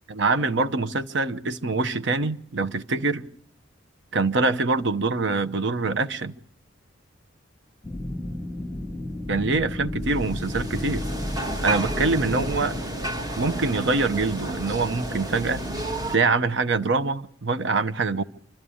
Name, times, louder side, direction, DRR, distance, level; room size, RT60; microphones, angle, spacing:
voice 1, 0.1-3.2 4.1-6.3 9.3-11.0 11.6-12.8 13.3-15.6 16.1-18.2, right 3 dB, 65° right, 0.9 m, -24 dB
sound 1, 7.8-12.8, left 1 dB, 5° left, 1.9 m, -32 dB
sound 2, 10.0-16.2, right 1 dB, 20° right, 1.6 m, -31 dB
26.5 x 12.5 x 8.6 m
head